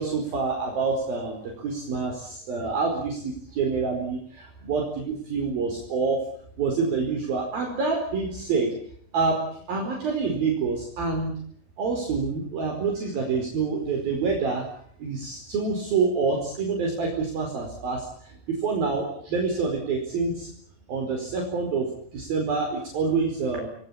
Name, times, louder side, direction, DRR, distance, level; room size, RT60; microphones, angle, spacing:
voice 1, 0.0-6.2 6.6-8.7 9.1-9.4 9.7-11.3 11.8-14.6 15.0-20.5 20.9-23.7, right 4 dB, 50° right, 1 dB, 6.3 m, -27 dB
29.5 x 21.0 x 8.9 m, 0.63 s
omnidirectional pair, 5.8 m